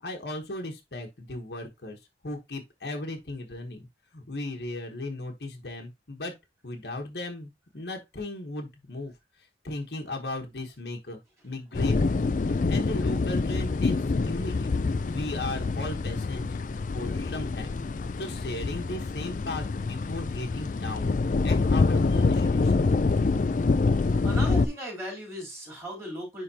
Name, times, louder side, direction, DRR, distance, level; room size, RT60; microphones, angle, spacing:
voice 1, 0.0-3.9 4.1-6.3 6.6-16.5 16.9-17.7 18.0-22.9, left 2 dB, 70° left, 1.2 m, -37 dB
sound 1, 11.7-24.7, left 3 dB, 45° left, 0.4 m, -26 dB
voice 2, 24.2-26.4, equal, 15° right, 3.5 m, -37 dB
10.0 x 3.6 x 2.8 m
head